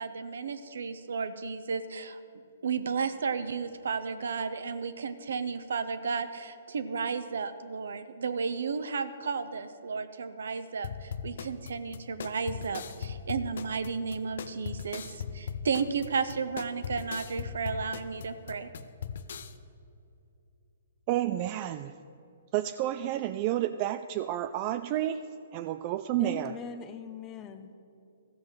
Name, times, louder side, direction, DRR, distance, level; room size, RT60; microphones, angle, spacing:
voice 1, 0.0-2.2 2.6-18.7, right 5 dB, 75° right, 11 dB, 0.7 m, -33 dB
sound 1, 10.8-19.5, left 7 dB, 65° left, 0.6 m, -39 dB
voice 2, 21.1-21.9 22.5-25.2 25.5-26.5, right 13 dB, 40° right, 10 dB, 0.3 m, -30 dB
voice 3, 26.1-27.7, left 7 dB, 25° left, 9 dB, 0.7 m, -41 dB
13.5 x 5.6 x 6.5 m, 2.6 s
hypercardioid pair, 135°, 0 cm